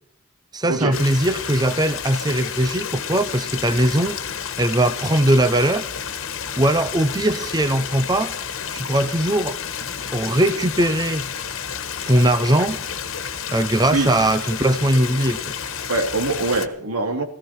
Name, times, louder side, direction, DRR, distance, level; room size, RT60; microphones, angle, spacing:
voice 1, 0.5-4.2 4.6-5.9 6.6-8.3 8.7-9.6 10.1-11.3 12.1-12.8 13.5-15.4, right 1 dB, 20° right, 11 dB, 0.8 m, -20 dB
Stream, 0.9-16.7, left 7 dB, 65° left, 1.6 m, -30 dB
voice 2, 15.9-17.2, right 3 dB, 80° right, 3 dB, 2.9 m, -23 dB
18.0 x 16.0 x 4.5 m, 0.65 s
head